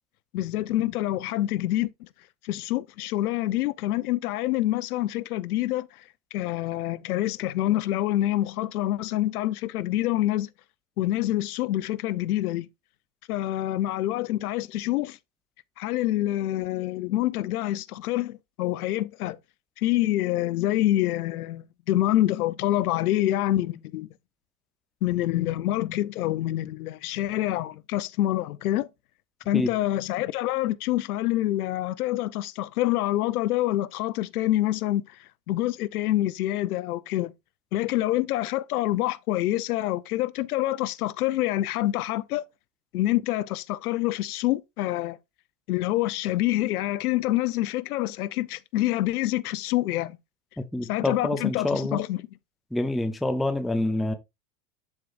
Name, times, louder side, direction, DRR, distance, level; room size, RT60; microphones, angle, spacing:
voice 1, 0.3-2.1 2.4-6.0 6.3-10.5 11.0-12.7 13.3-15.2 15.8-19.4 19.8-24.1 25.0-28.9 29.5-37.3 37.7-42.5 42.9-45.2 45.7-50.2 50.8-52.2, left 15 dB, 70° left, 0.7 m, -26 dB
voice 2, 50.6-52.0 52.7-54.1, left 1 dB, ahead, 0.5 m, -27 dB
11.0 x 4.6 x 2.4 m
hypercardioid pair, 110°, 46 cm